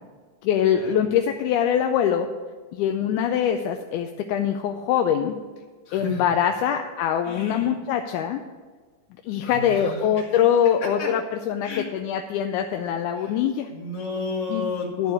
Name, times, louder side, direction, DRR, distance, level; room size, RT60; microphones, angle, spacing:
voice 1, 0.4-2.3 2.7-5.4 5.9-8.4 9.2-13.7 14.5-14.6 15.0-15.1, left 9 dB, 80° left, 5 dB, 2.0 m, -23 dB
voice 2, 5.9-6.3 7.2-7.7 9.3-10.3 11.0-11.1 11.6-11.8 13.2-13.4 13.7-15.1, left 3 dB, 50° left, -3 dB, 2.9 m, -33 dB
12.0 x 4.5 x 8.1 m, 1.4 s
omnidirectional pair, 3.6 m